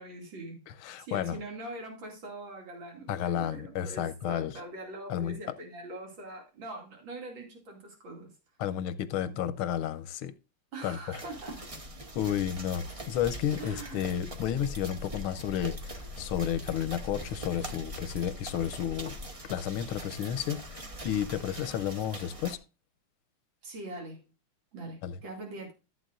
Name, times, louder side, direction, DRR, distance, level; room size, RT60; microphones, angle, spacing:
voice 1, 0.0-0.6 1.0-8.3 9.2-9.4 10.7-11.7 13.6-14.2 23.6-24.2 24.7-25.7, right 2 dB, 65° right, 3.2 m, -43 dB
voice 2, 0.7-1.4 3.1-4.6 5.1-5.4 8.6-10.3 10.8-11.2 12.1-19.2 19.5-22.6 25.0-25.2, left 10 dB, 90° left, 1.5 m, -32 dB
sound 1, 11.1-22.6, equal, 30° right, 0.6 m, -42 dB
14.0 x 7.9 x 2.5 m
omnidirectional pair, 2.3 m